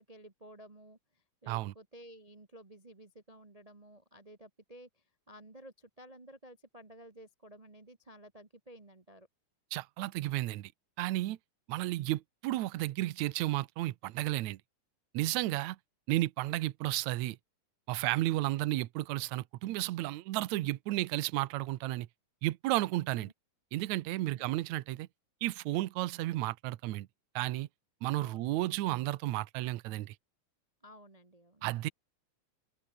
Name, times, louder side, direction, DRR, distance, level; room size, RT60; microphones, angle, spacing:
voice 1, 0.0-9.3 23.2-23.3 24.2-24.5 28.1-28.5 30.8-31.6, right 1 dB, 40° right, 0.5 m, -54 dB
voice 2, 9.7-10.7 11.0-11.4 11.7-14.6 15.1-15.8 16.1-17.4 17.9-22.1 22.4-23.3 23.7-25.1 25.4-27.1 27.4-27.7 28.0-30.2 31.6-31.9, right 16 dB, 75° right, 2.1 m, -33 dB
omnidirectional pair, 3.5 m